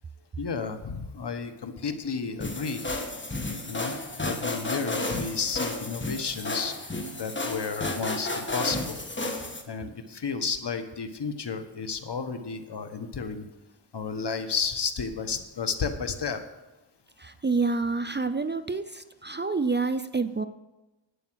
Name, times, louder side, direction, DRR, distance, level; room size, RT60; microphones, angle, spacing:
voice 1, 0.4-2.8 3.7-6.9 7.1-9.0 9.7-13.4 13.9-16.4, left 5 dB, 60° left, 8 dB, 1.3 m, -32 dB
sound 1, 2.4-9.6, left 2 dB, 25° left, 1.5 m, -32 dB
voice 2, 17.2-20.5, right 4 dB, 25° right, 11 dB, 0.5 m, -28 dB
11.5 x 8.7 x 6.2 m, 1.0 s
wide cardioid pair, 80°, 46 cm